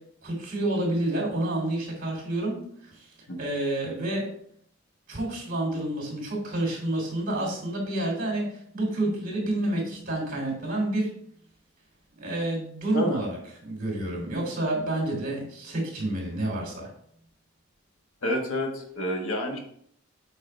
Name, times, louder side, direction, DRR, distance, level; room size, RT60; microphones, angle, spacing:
voice 1, 0.2-3.1 3.4-4.3 5.1-11.1 12.2-16.9, right 1 dB, 45° right, -1 dB, 3.0 m, -29 dB
voice 2, 18.2-19.6, equal, 90° left, 2 dB, 1.4 m, -29 dB
7.9 x 4.9 x 3.3 m, 0.64 s
head